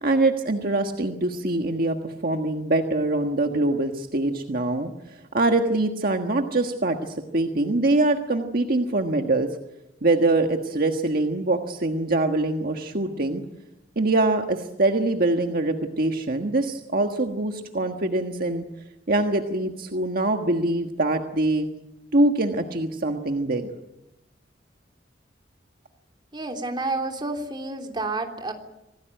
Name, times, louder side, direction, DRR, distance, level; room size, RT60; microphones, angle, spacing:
voice 1, 0.0-9.5 10.0-13.4 13.9-18.6 19.1-21.7 22.1-23.7, right 2 dB, 55° right, 4 dB, 1.5 m, -24 dB
voice 2, 26.3-28.5, right 2 dB, 25° right, 3 dB, 3.3 m, -29 dB
26.5 x 18.5 x 9.1 m, 0.95 s
head